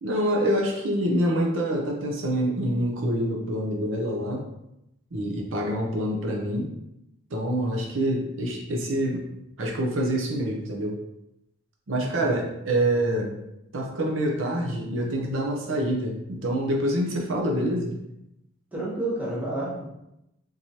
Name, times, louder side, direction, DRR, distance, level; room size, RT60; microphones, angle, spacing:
voice 1, 0.0-4.4 5.1-6.7 7.3-9.2 9.6-11.0 11.9-13.3 13.7-18.0, right 1 dB, 70° right, 0 dB, 0.6 m, -26 dB
voice 2, 12.0-12.3 18.7-19.9, right 1 dB, 10° right, -6 dB, 1.0 m, -30 dB
3.7 x 3.0 x 2.8 m, 0.85 s
head